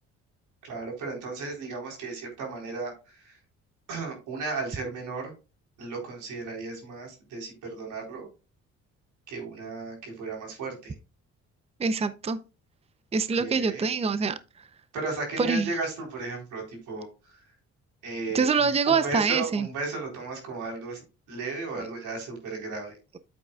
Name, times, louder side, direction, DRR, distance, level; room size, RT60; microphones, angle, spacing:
voice 1, 0.6-3.4 3.9-5.3 5.8-8.3 9.3-10.9 13.4-13.8 14.9-17.4 18.0-22.9, right 3 dB, 90° right, 1 dB, 4.3 m, -35 dB
voice 2, 11.8-12.4 13.1-14.4 15.4-15.7 18.3-19.7, right 5 dB, 20° right, 12 dB, 0.6 m, -25 dB
8.8 x 8.4 x 2.4 m, 0.30 s
cardioid pair, 90°, 30 cm